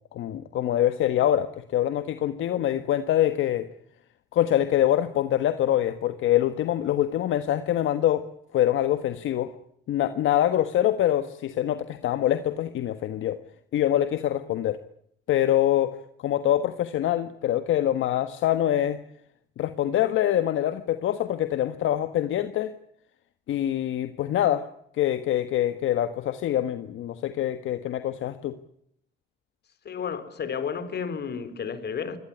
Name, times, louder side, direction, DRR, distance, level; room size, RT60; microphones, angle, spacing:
voice 1, 0.1-3.7 4.3-8.3 8.5-9.5 9.9-13.4 13.7-14.8 15.3-16.0 16.2-19.0 19.6-22.7 23.5-24.6 25.0-28.5, left 12 dB, 80° left, 1.4 m, -24 dB
voice 2, 29.8-32.2, left 6 dB, 55° left, 4.2 m, -32 dB
24.0 x 18.5 x 10.0 m
cardioid pair, 90°, 20 cm